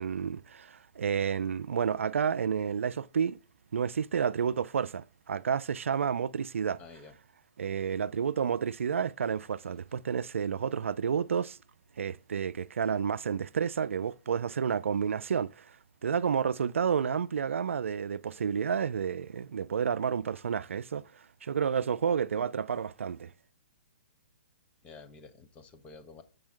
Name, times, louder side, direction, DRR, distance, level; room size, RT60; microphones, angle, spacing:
voice 1, 0.0-3.4 3.7-6.8 7.6-11.6 12.0-15.6 16.0-21.0 21.4-23.3, right 7 dB, 90° right, 0.3 m, -30 dB
voice 2, 6.8-7.1 24.8-26.2, left 4 dB, 20° left, 0.8 m, -50 dB
7.6 x 5.2 x 3.6 m
hypercardioid pair, 145°, 7 cm